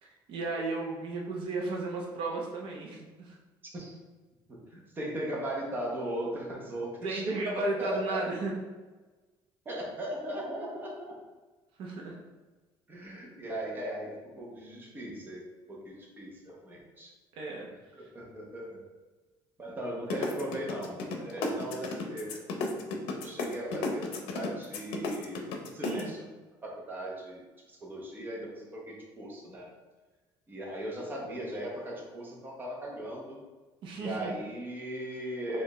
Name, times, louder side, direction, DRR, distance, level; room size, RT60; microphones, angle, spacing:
voice 1, 0.0-3.4 7.0-8.6 11.8-12.2 17.4-17.7 25.8-26.2 33.8-34.3, right 3 dB, 65° right, -2 dB, 0.7 m, -34 dB
voice 2, 4.5-7.2 7.6-8.2 9.6-11.2 12.9-15.4 15.7-17.1 18.0-18.8 19.6-22.3 22.7-24.0 24.3-26.2 26.6-29.7 30.5-33.4 34.0-35.6, right 1 dB, 20° right, -3 dB, 0.9 m, -38 dB
sound 1, 20.1-26.0, left 4 dB, 85° left, 0.6 m, -33 dB
4.5 x 2.4 x 3.1 m, 1.3 s
cardioid pair, 135°, 9 cm